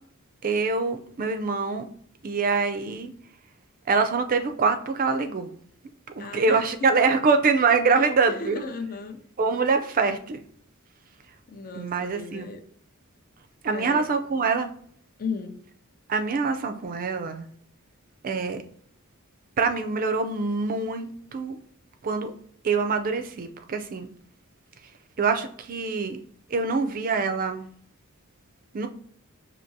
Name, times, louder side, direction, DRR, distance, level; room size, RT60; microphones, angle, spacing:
voice 1, 0.4-1.9 2.2-3.1 3.9-5.5 6.2-8.6 9.4-10.4 11.7-12.5 13.6-14.7 16.1-17.5 18.2-18.6 19.6-21.6 22.0-22.3 22.6-24.1 25.2-26.2 26.5-27.6 28.7-28.9, right 4 dB, 40° right, 0.4 m, -24 dB
voice 2, 6.2-7.0 7.9-9.2 11.5-12.6 13.7-14.0 15.2-15.6, left 4 dB, 40° left, 0.5 m, -35 dB
5.8 x 2.8 x 2.7 m
head